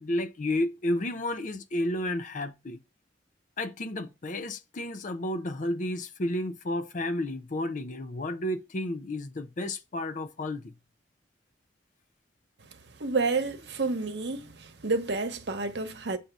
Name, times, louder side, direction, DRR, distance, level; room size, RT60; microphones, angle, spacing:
voice 1, 0.0-2.8 3.6-10.7, left 1 dB, 45° left, 0.6 m, -32 dB
voice 2, 13.0-14.5 14.8-16.2, right 3 dB, 65° right, 1.0 m, -29 dB
7.8 x 2.8 x 6.0 m
head